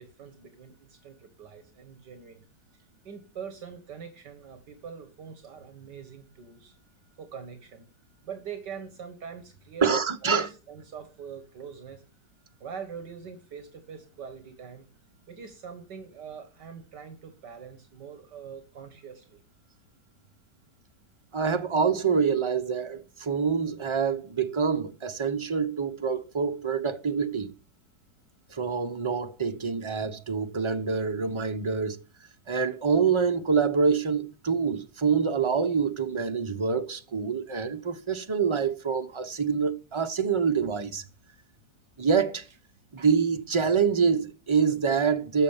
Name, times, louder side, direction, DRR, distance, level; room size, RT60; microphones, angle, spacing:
voice 1, 0.0-2.4 3.0-6.8 7.2-7.9 8.2-12.0 12.6-14.9 15.3-19.4, right 7 dB, 75° right, 2.1 m, -43 dB
voice 2, 9.8-10.5 21.3-27.5 28.5-32.0 32.5-41.0 42.0-42.5 42.9-45.4, right 5 dB, 25° right, 0.7 m, -26 dB
13.5 x 6.7 x 7.2 m
omnidirectional pair, 1.9 m